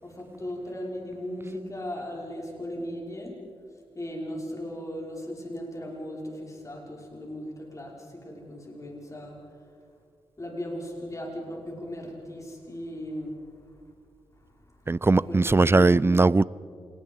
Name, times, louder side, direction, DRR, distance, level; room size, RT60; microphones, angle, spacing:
voice 1, 0.0-3.3 4.0-9.4 10.4-13.4 15.1-15.4 15.8-16.1, equal, 30° left, 5.7 m, -37 dB
voice 2, 14.9-16.4, right 3 dB, 25° right, 0.5 m, -19 dB
27.0 x 20.5 x 5.6 m
cardioid pair, 50°, 10 cm